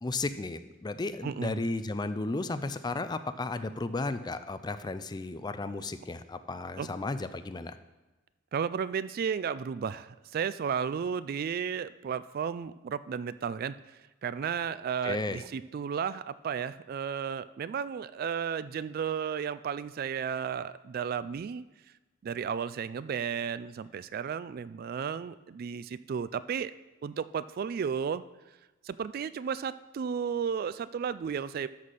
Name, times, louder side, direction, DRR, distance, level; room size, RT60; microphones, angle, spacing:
voice 1, 0.0-7.8 15.0-15.4, left 3 dB, 20° left, 11 dB, 0.4 m, -34 dB
voice 2, 1.2-1.7 6.8-6.9 8.5-21.6 22.2-26.7 27.0-28.2 28.8-31.7, right 7 dB, 50° right, 15 dB, 0.3 m, -33 dB
12.5 x 4.3 x 6.3 m, 1.1 s
head